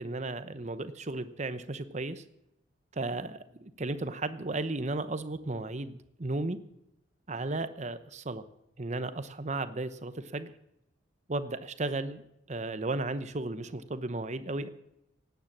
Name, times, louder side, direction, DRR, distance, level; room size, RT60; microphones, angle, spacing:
voice 1, 0.0-2.2 2.9-6.6 7.3-8.4 8.8-10.5 11.3-12.2 12.5-14.7, right 2 dB, 35° right, 12 dB, 0.9 m, -34 dB
17.5 x 9.5 x 7.4 m, 0.83 s
head